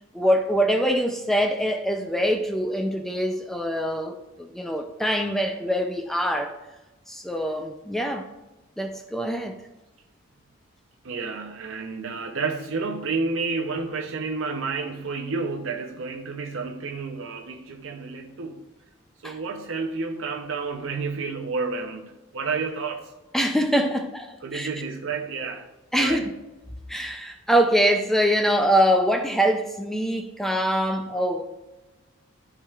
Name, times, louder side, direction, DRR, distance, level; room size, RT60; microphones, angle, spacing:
voice 1, 0.1-6.5 7.1-8.2 8.8-9.5 19.2-19.4 23.3-24.7 25.9-26.3 26.9-31.4, equal, ahead, 0.4 m, -24 dB
voice 2, 11.0-18.6 19.2-23.1 24.4-25.7 26.0-26.3, right 4 dB, 65° right, 0.6 m, -30 dB
12.0 x 4.7 x 2.3 m
head